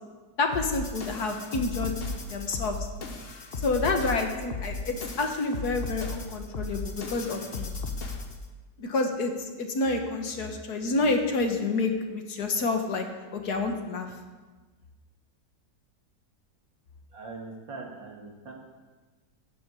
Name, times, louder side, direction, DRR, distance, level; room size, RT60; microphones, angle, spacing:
voice 1, 0.4-1.9 2.3-2.9 3.6-7.7 8.8-13.0 13.3-14.1, left 3 dB, 60° left, 4 dB, 1.8 m, -28 dB
sound 1, 0.5-8.4, left 3 dB, 40° left, 1.1 m, -35 dB
voice 2, 17.1-18.5, right 3 dB, 85° right, 0 dB, 2.9 m, -42 dB
12.0 x 7.9 x 8.3 m, 1.3 s
omnidirectional pair, 2.0 m